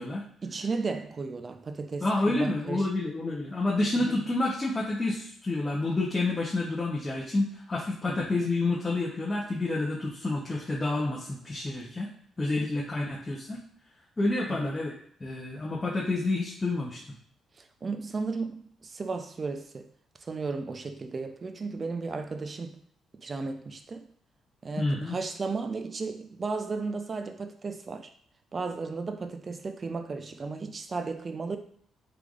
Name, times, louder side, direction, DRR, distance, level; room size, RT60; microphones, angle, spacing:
voice 1, 0.4-2.9 3.9-4.2 8.1-8.3 14.5-14.8 17.6-19.9 20.2-22.8 23.1-24.1 24.6-28.1 28.5-31.6, right 4 dB, 35° right, 0.4 m, -34 dB
voice 2, 2.0-12.1 12.4-13.6 14.2-14.9 15.2-17.0 24.8-25.1, left 2 dB, 20° left, 0.7 m, -29 dB
3.8 x 3.2 x 2.4 m
cardioid pair, 90°, 0 cm